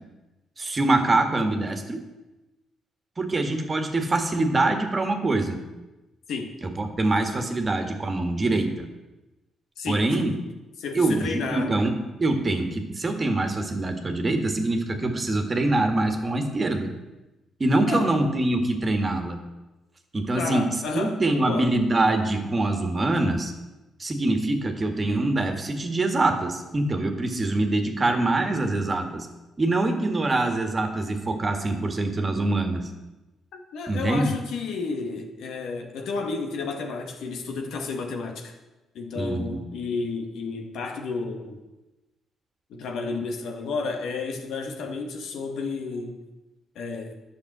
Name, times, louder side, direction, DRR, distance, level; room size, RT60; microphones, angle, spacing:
voice 1, 0.6-2.0 3.2-5.6 6.6-8.9 9.9-10.3 10.9-16.9 17.6-19.4 20.1-23.5 24.0-29.3 29.6-32.9 33.9-34.3 39.2-39.6, right 2 dB, 30° right, 5 dB, 1.8 m, -24 dB
voice 2, 9.8-10.3 10.8-11.7 17.9-18.1 20.4-21.8 33.5-38.5 38.9-41.6 42.7-46.2 46.8-47.1, left 4 dB, 75° left, 3 dB, 1.9 m, -32 dB
11.0 x 6.8 x 8.1 m, 1.1 s
cardioid pair, 90°, 0 cm